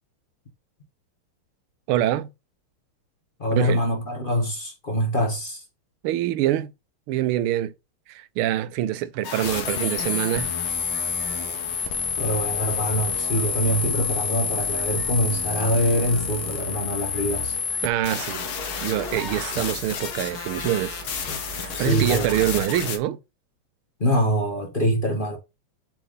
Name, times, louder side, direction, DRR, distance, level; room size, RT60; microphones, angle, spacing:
voice 1, 1.9-2.3 3.6-3.8 6.0-6.7 7.1-7.7 8.1-10.5 17.8-18.5 18.8-21.0 21.6-23.2, right 13 dB, 80° right, 1.5 m, -25 dB
voice 2, 3.4-5.6 12.2-17.5 21.8-22.3 24.0-25.4, equal, 30° left, 1.4 m, -24 dB
sound 1, 9.2-23.0, left 6 dB, 75° left, 2.1 m, -29 dB
sound 2, 10.6-22.6, right 2 dB, 5° left, 1.9 m, -41 dB
7.6 x 3.7 x 5.3 m
omnidirectional pair, 2.4 m